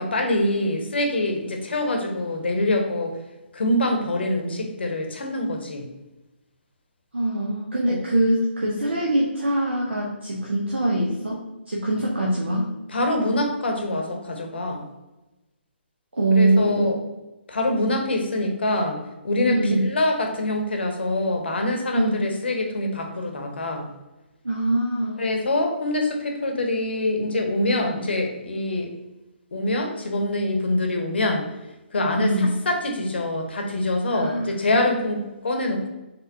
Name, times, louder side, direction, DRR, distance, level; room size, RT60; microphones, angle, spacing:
voice 1, 0.0-3.1 3.5-5.9 7.9-8.0 12.9-14.8 16.3-17.0 17.5-23.9 25.2-28.9 29.5-31.5 31.9-35.9, left 1 dB, 65° left, 3 dB, 0.8 m, -25 dB
voice 2, 7.1-12.7 16.1-16.9 19.5-19.8 22.0-22.2 24.4-25.2 32.2-32.5 34.1-34.5, right 1 dB, 80° right, -3 dB, 0.8 m, -23 dB
4.4 x 3.7 x 2.6 m, 1.0 s
figure-of-eight pair, 135°, 6 cm